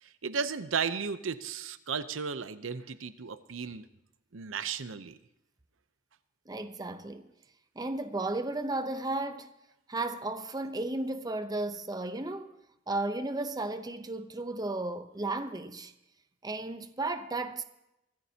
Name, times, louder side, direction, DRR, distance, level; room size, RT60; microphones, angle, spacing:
voice 1, 0.0-3.9 4.3-5.2, right 6 dB, 85° right, 0.7 m, -34 dB
voice 2, 6.5-7.3 7.8-9.5 9.9-12.5 12.9-15.9 16.4-17.6, right 2 dB, 20° right, 0.7 m, -34 dB
24.5 x 14.0 x 2.8 m
head